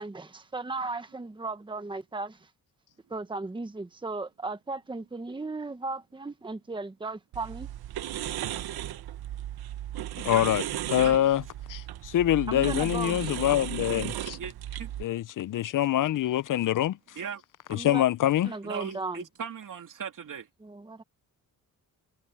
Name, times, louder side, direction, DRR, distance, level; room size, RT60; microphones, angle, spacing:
voice 1, 0.0-2.5 3.1-7.7 12.5-13.3 17.7-18.0 18.4-19.2 20.6-21.0, right 3 dB, 15° right, 1.2 m, -36 dB
sound 1, 7.3-15.0, right 12 dB, 85° right, 1.0 m, -35 dB
voice 2, 10.2-10.6 10.9-11.4 11.7-14.4 15.0-17.0 17.7-18.5, left 12 dB, 60° left, 0.5 m, -25 dB
voice 3, 18.6-20.5, right 7 dB, 60° right, 3.0 m, -37 dB
cardioid pair, 120°, 36 cm